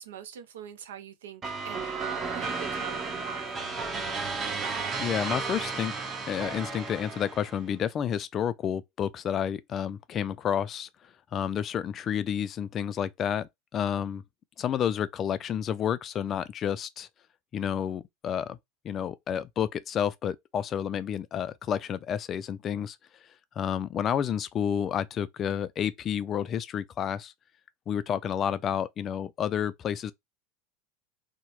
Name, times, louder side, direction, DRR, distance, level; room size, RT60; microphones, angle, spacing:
voice 1, 0.0-3.6, right 9 dB, 90° right, 0.5 m, -43 dB
sound 1, 1.4-7.6, right 4 dB, 25° right, 0.7 m, -33 dB
voice 2, 5.0-5.9 6.3-10.9 11.3-14.2 14.6-17.1 17.5-18.6 18.8-23.0 23.6-27.3 27.9-30.1, left 9 dB, 35° left, 0.3 m, -30 dB
2.8 x 2.1 x 2.9 m
supercardioid pair, 115°, 0 cm